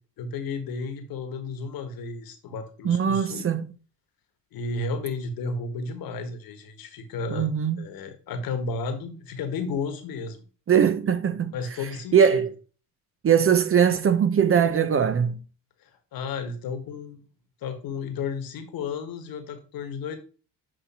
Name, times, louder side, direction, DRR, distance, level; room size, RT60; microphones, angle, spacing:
voice 1, 0.2-3.5 4.5-7.5 7.8-10.4 11.5-12.4 15.8-17.2 17.6-20.2, left 4 dB, 65° left, 1.5 m, -33 dB
voice 2, 2.8-3.7 7.3-7.8 10.7-11.5 12.1-12.5 13.2-15.4, right 8 dB, 35° right, 0.8 m, -21 dB
7.8 x 3.0 x 4.3 m
supercardioid pair, 75°, 39 cm